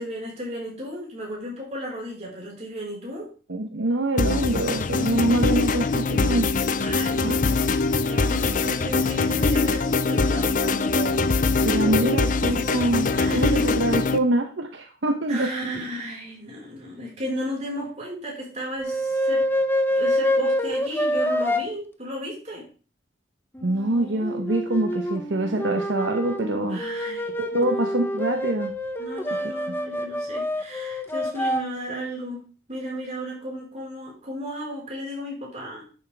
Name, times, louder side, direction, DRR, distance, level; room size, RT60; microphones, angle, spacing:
voice 1, 0.0-3.3 6.8-7.7 8.0-11.3 11.8-12.2 13.1-13.6 15.3-19.5 19.9-22.7 26.7-27.8 29.0-35.8, equal, 35° right, -4 dB, 4.7 m, -34 dB
voice 2, 3.5-6.5 7.2-7.4 11.6-15.5 23.6-26.8 27.4-28.7, right 1 dB, 75° right, 4 dB, 1.0 m, -25 dB
sound 1, 4.2-14.2, left 3 dB, 45° left, 0.5 m, -23 dB
sound 2, 18.8-21.6 23.5-31.6, equal, 10° left, 0.7 m, -26 dB
11.0 x 7.4 x 3.4 m, 0.37 s
head